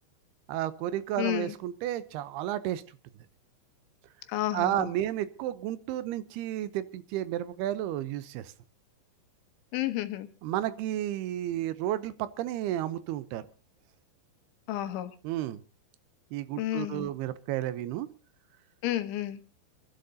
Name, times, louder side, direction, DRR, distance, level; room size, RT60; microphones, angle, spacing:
voice 1, 0.5-2.8 4.5-8.5 10.4-13.4 15.2-15.6 16.3-18.1, right 12 dB, 75° right, 13 dB, 2.5 m, -32 dB
voice 2, 1.2-1.5 4.3-4.9 9.7-10.3 14.7-15.1 16.6-17.1 18.8-19.4, left 14 dB, 85° left, 10 dB, 3.5 m, -31 dB
28.5 x 11.5 x 2.8 m, 0.34 s
omnidirectional pair, 5.3 m